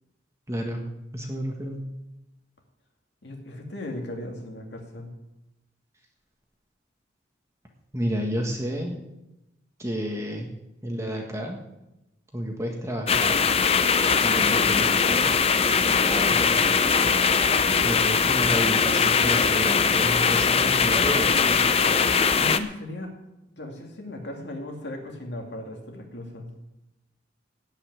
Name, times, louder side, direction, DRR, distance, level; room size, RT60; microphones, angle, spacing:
voice 1, 0.5-0.8 1.1-1.8 7.9-9.0 9.8-10.5 10.8-11.6 12.3-13.5 14.2-15.2 16.0-16.6 17.8-21.6, equal, 15° right, 1 dB, 1.6 m, -31 dB
voice 2, 3.2-5.1 16.2-16.4 22.3-23.1 23.6-26.5, left 1 dB, 65° left, 1 dB, 2.4 m, -37 dB
sound 1, 13.1-22.6, left 5 dB, 30° left, 0.6 m, -21 dB
17.0 x 5.8 x 9.6 m, 0.93 s
head